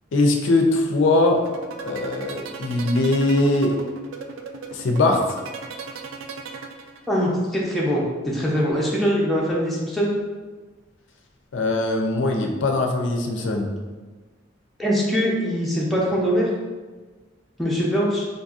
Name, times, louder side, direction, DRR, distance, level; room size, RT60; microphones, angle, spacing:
voice 1, 0.1-1.4 1.8-3.8 4.7-5.2 11.5-13.7, left 2 dB, 75° left, 2 dB, 0.4 m, -21 dB
sound 1, 1.4-7.3, right 5 dB, 75° right, 0.3 m, -36 dB
voice 2, 7.1-10.1 14.8-16.5 17.6-18.3, equal, ahead, -6 dB, 0.5 m, -22 dB
3.8 x 2.6 x 2.4 m, 1.3 s
head